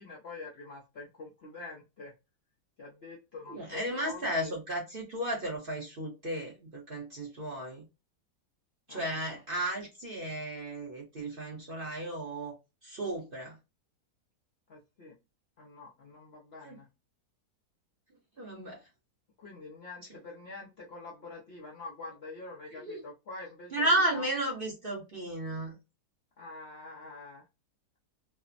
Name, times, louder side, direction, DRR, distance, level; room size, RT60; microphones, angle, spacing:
voice 1, 0.0-2.1 2.8-4.5 8.9-9.0 14.7-15.1 15.6-16.8 19.4-23.7 24.1-24.2 26.4-27.4, left 3 dB, 60° left, 0.7 m, -46 dB
voice 2, 3.5-7.9 8.9-12.6 12.8-13.6 16.6-16.8 18.4-18.8 22.7-23.0 23.7-25.8, right 1 dB, 45° right, 0.8 m, -33 dB
3.2 x 2.0 x 2.4 m
omnidirectional pair, 1.8 m